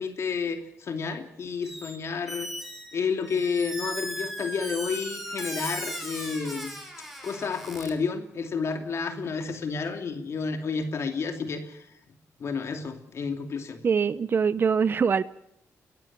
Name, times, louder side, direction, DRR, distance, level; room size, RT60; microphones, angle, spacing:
voice 1, 0.0-2.5 2.9-6.8 7.2-11.9 12.4-13.8, left 5 dB, 50° left, 6 dB, 2.7 m, -30 dB
Squeak, 1.6-2.0 2.3-7.9, equal, ahead, 5.2 m, -37 dB
voice 2, 13.8-15.2, right 6 dB, 40° right, 15 dB, 0.7 m, -23 dB
22.0 x 15.0 x 8.8 m, 0.74 s
cardioid pair, 120°, 6 cm